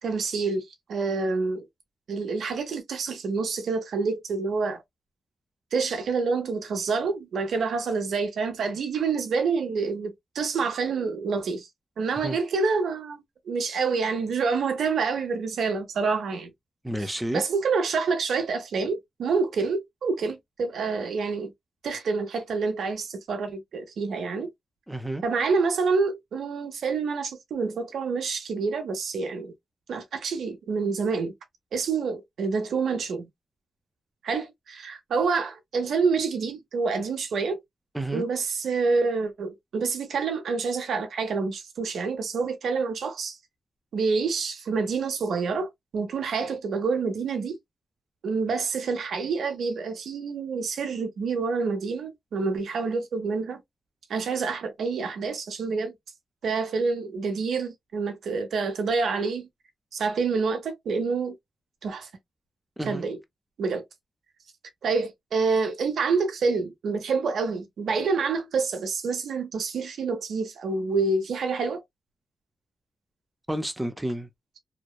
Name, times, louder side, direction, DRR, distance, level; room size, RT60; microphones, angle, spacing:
voice 1, 0.0-1.7 2.1-4.8 5.7-11.7 12.0-16.5 17.3-21.5 21.8-24.5 25.2-29.5 29.9-31.3 31.7-33.3 34.2-37.6 38.1-43.4 43.9-47.6 48.2-53.6 54.1-55.9 56.4-59.5 59.9-61.3 61.8-62.1 62.9-63.2 63.6-63.8 64.8-71.8, right 4 dB, 90° right, 0.7 m, -27 dB
voice 2, 16.8-17.4 24.9-25.2 37.9-38.3 62.8-63.1 73.5-74.3, right 1 dB, 10° right, 0.4 m, -30 dB
2.8 x 2.0 x 2.2 m
cardioid pair, 95°, 0 cm